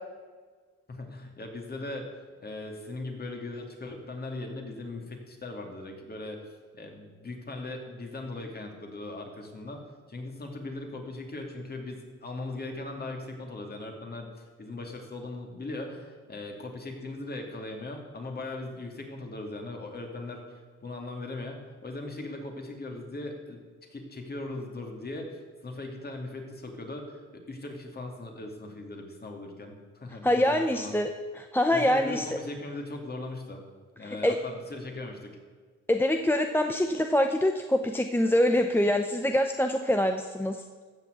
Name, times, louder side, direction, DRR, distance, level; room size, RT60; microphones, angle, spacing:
voice 1, 0.9-2.1 2.4-6.4 6.7-9.8 10.1-20.4 20.8-23.6 23.9-25.3 25.6-27.2 27.5-30.9 31.7-33.6 34.0-35.4, left 2 dB, 30° left, 2 dB, 2.5 m, -39 dB
voice 2, 30.2-31.1 31.4-32.3 34.0-34.4 35.9-40.6, left 1 dB, 5° left, 5 dB, 0.7 m, -25 dB
14.5 x 6.1 x 8.1 m, 1.5 s
cardioid pair, 90°, 30 cm